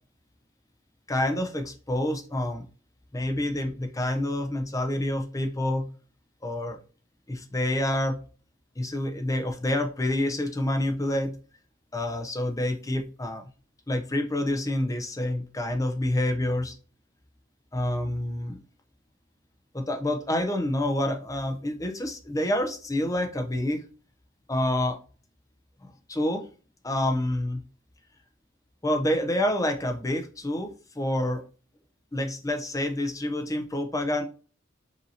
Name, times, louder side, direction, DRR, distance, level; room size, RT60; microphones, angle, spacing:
voice 1, 1.1-2.6 3.1-5.9 6.4-6.8 7.3-8.2 8.8-11.3 11.9-13.4 13.9-16.7 17.7-18.6 19.7-23.8 24.5-25.0 25.8-26.4 26.8-27.6 28.8-31.4 32.1-34.2, left 1 dB, 15° left, 5 dB, 0.6 m, -28 dB
5.4 x 2.8 x 2.8 m, 0.37 s
head